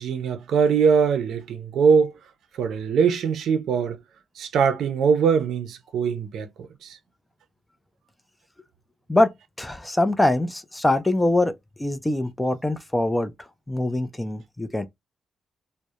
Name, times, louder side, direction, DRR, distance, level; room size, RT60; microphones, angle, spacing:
voice 1, 0.0-2.1 2.6-4.0 4.4-6.5 6.8-7.0, right 6 dB, 75° right, 0.5 m, -21 dB
voice 2, 9.6-11.5 11.8-13.3 13.7-14.9, left 1 dB, 10° left, 0.3 m, -23 dB
2.3 x 2.0 x 2.7 m
cardioid pair, 145°, 0 cm